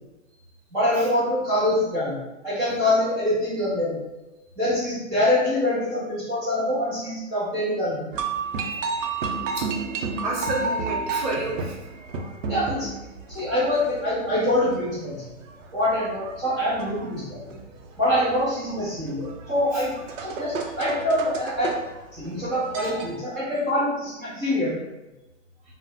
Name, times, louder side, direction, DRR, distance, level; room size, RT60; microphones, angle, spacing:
voice 1, 0.7-2.2 2.4-4.0 4.6-8.1 12.5-12.9 13.3-15.3 15.7-17.5 18.0-19.9 20.2-21.7 22.1-24.8, left 1 dB, 10° right, -11 dB, 0.6 m, -25 dB
sound 1, 8.1-23.2, right 4 dB, 75° right, 0.6 m, -33 dB
voice 2, 10.2-11.9 19.7-19.8 22.8-22.9, right 2 dB, 30° right, -5 dB, 0.9 m, -30 dB
2.4 x 2.0 x 3.9 m, 1.0 s
hypercardioid pair, 160°, 38 cm